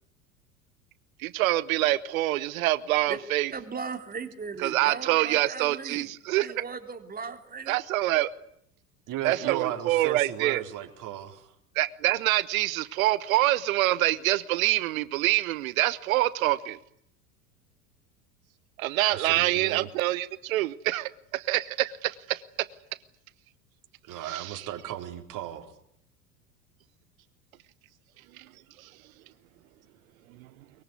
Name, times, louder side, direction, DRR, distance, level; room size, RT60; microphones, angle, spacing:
voice 1, 1.2-3.5 4.6-6.5 7.7-8.3 9.2-10.6 11.7-16.8 18.8-22.4 24.2-24.7 28.4-28.5 30.4-30.5, right 16 dB, 60° right, 17 dB, 1.2 m, -26 dB
voice 2, 3.5-7.8, right 5 dB, 20° right, 6 dB, 3.4 m, -38 dB
voice 3, 9.1-11.5 19.1-19.9 24.1-25.7, right 11 dB, 40° right, 4 dB, 4.1 m, -36 dB
23.0 x 22.5 x 9.5 m, 0.74 s
figure-of-eight pair, 80°, 46 cm